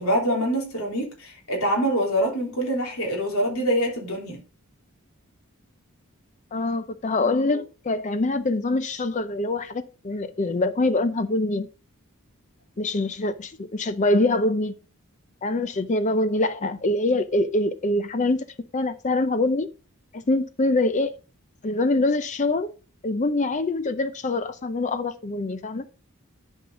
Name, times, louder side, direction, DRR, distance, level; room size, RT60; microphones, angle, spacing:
voice 1, 0.0-4.4, equal, 70° left, 3.5 m, -25 dB
voice 2, 6.5-11.7 12.8-14.7 15.4-18.4 18.7-19.7 20.1-21.1 21.6-22.7 23.0-25.8, left 2 dB, 35° left, 0.5 m, -24 dB
11.0 x 5.5 x 3.8 m
head